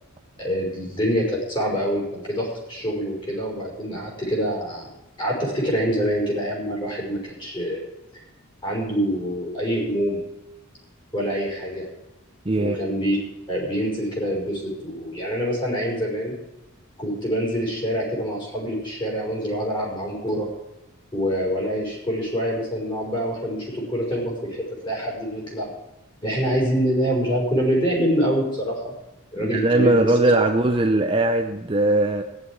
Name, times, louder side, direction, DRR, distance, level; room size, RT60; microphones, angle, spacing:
voice 1, 0.4-4.9 5.2-7.8 8.6-10.2 11.1-11.9 12.6-13.2 13.5-16.3 17.0-20.5 21.1-25.7 26.2-28.9 29.3-30.1, equal, 20° left, -2 dB, 5.3 m, -25 dB
voice 2, 12.5-12.9 29.4-32.2, right 2 dB, 25° right, 4 dB, 0.7 m, -20 dB
14.5 x 11.0 x 4.8 m, 0.96 s
head